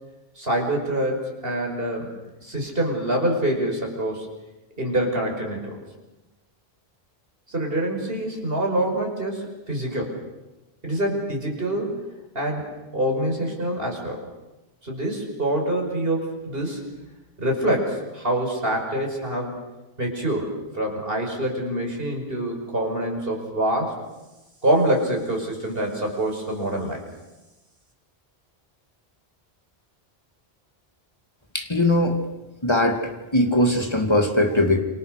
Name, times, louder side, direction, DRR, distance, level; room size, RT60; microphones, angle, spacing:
voice 1, 0.4-2.1 2.4-4.3 4.8-5.8 7.5-10.2 10.8-12.1 12.3-12.7 12.9-14.2 14.8-16.8 17.4-19.6 20.0-23.9 24.6-27.0, right 1 dB, 65° right, 1 dB, 5.9 m, -25 dB
voice 2, 31.5-32.2 32.6-34.8, left 1 dB, 25° left, 4 dB, 2.6 m, -20 dB
29.0 x 25.0 x 6.6 m, 1.0 s
omnidirectional pair, 1.1 m